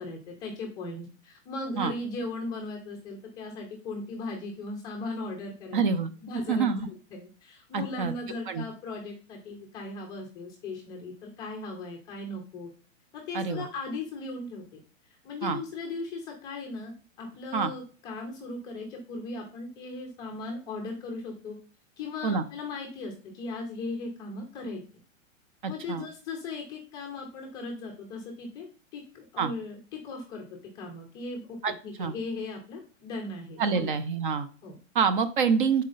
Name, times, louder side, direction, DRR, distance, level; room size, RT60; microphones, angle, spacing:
voice 1, 0.0-5.8 6.2-12.7 13.1-14.6 15.2-21.6 22.0-24.8 25.6-28.7 28.9-31.6 31.8-33.9 34.6-34.8, left 2 dB, 10° left, 0 dB, 0.5 m, -38 dB
voice 2, 5.7-6.1 6.5-6.9 7.7-8.1 8.5-8.7 13.3-13.6 15.4-15.6 17.5-17.7 22.2-22.4 25.6-26.1 29.4-29.5 31.6-32.1 33.6-34.5 34.9-35.8, right 5 dB, 40° right, 12 dB, 0.5 m, -26 dB
6.4 x 4.2 x 3.8 m, 0.38 s
hypercardioid pair, 160°, 38 cm